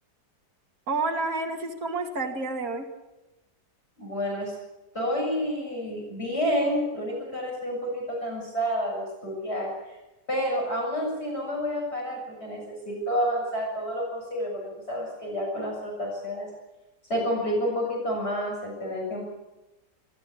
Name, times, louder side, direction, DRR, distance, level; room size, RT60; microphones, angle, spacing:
voice 1, 0.9-2.9, right 3 dB, 55° right, 1 dB, 2.9 m, -29 dB
voice 2, 4.0-4.5 4.9-9.7 10.3-14.6 14.9-16.5 17.1-19.2, equal, 35° left, -2 dB, 7.6 m, -29 dB
25.5 x 15.5 x 8.6 m, 0.99 s
omnidirectional pair, 1.9 m